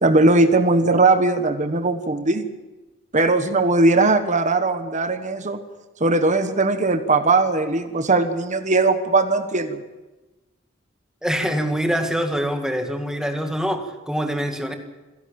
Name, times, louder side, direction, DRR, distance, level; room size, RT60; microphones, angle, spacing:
voice 1, 0.0-2.4 3.1-5.6 6.0-9.8, right 3 dB, 40° right, 8 dB, 1.4 m, -19 dB
voice 2, 11.2-14.7, equal, 5° right, 5 dB, 1.9 m, -24 dB
27.5 x 11.5 x 8.8 m, 1.1 s
head